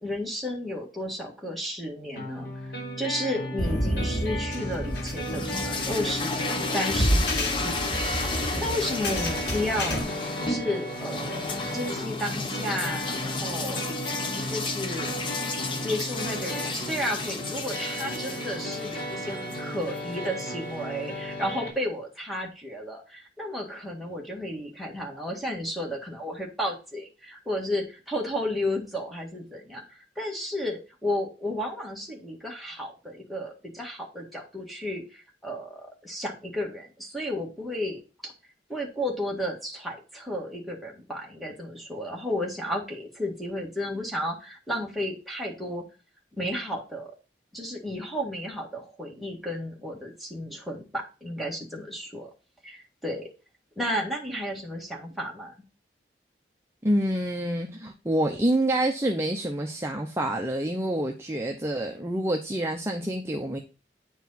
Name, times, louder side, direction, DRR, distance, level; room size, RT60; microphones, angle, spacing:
voice 1, 0.0-2.7 3.0-10.0 10.4-11.4 11.7-13.8 14.5-15.1 15.8-38.3 38.7-45.9 46.4-47.1 47.5-52.3 52.6-53.3 53.8-55.5, left 1 dB, ahead, -1 dB, 1.8 m, -33 dB
sound 1, 2.2-21.7, equal, 65° left, 4.9 m, -36 dB
sound 2, 3.6-10.0, equal, 85° left, 2.5 m, -29 dB
sound 3, 4.8-20.9, left 3 dB, 30° left, 0.9 m, -33 dB
voice 2, 56.8-63.6, right 1 dB, 15° right, 2 dB, 0.7 m, -27 dB
9.3 x 4.7 x 4.1 m, 0.32 s
head